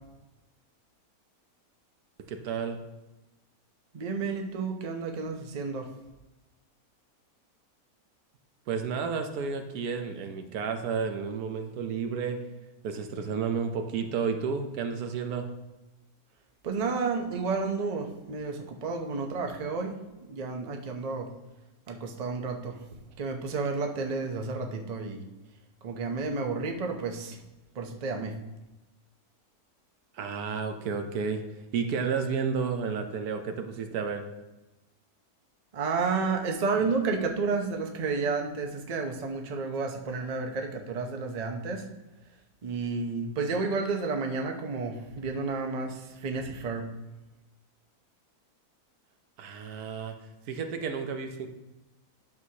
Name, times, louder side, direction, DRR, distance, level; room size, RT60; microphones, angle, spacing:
voice 1, 2.2-2.8 8.7-12.4 12.8-15.5 30.1-34.3 49.4-50.2 50.5-51.5, right 6 dB, 80° right, 6 dB, 1.3 m, -31 dB
voice 2, 3.9-5.9 16.6-20.0 20.3-21.3 21.9-22.8 23.2-25.2 25.8-27.4 27.7-28.3 35.7-41.8 42.6-46.8, right 4 dB, 35° right, 3 dB, 0.6 m, -31 dB
11.0 x 6.2 x 2.8 m, 1.0 s
omnidirectional pair, 1.6 m